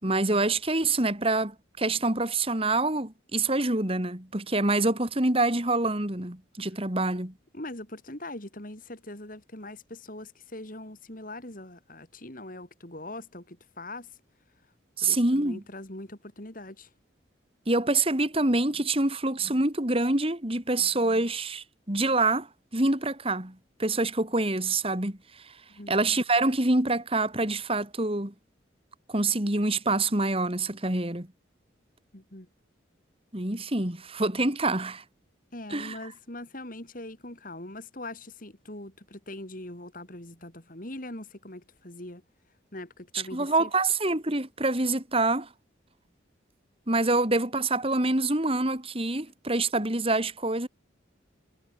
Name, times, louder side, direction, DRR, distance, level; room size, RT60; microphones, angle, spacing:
voice 1, 0.0-7.3 15.0-15.6 17.7-25.2 25.9-28.3 29.1-31.3 33.3-35.0 35.7-36.0 43.3-45.5 46.9-50.7, right 2 dB, 30° right, 2.8 m, -26 dB
voice 2, 7.5-14.2 15.0-16.9 25.7-26.0 32.1-32.5 35.5-42.2 42.7-43.7, left 1 dB, 45° left, 3.9 m, -42 dB
head